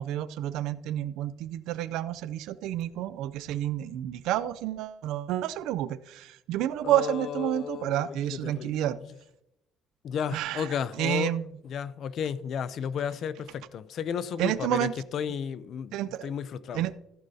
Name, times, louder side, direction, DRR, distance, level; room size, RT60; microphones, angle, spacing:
voice 1, 0.0-9.0 10.3-11.5 14.4-14.9 15.9-16.3 16.7-16.9, right 13 dB, 75° right, 16 dB, 0.5 m, -30 dB
voice 2, 6.8-8.8 10.0-11.3 11.6-16.8, left 8 dB, 45° left, 16 dB, 0.5 m, -33 dB
14.5 x 9.1 x 2.8 m, 0.86 s
cardioid pair, 160°, 0 cm